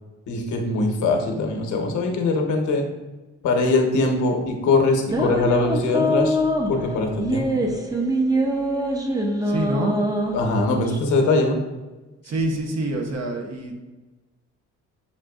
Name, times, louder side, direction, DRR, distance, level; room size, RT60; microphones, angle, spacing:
voice 1, 0.3-2.8 3.4-6.4 6.7-7.5 10.3-11.6, left 3 dB, 75° left, 2 dB, 0.9 m, -21 dB
sound 1, 5.1-11.0, equal, 10° right, 0.6 m, -24 dB
voice 2, 9.4-9.9 12.2-13.8, right 1 dB, 60° right, 2 dB, 1.0 m, -26 dB
7.2 x 2.5 x 2.3 m, 1.2 s
cardioid pair, 90°, 30 cm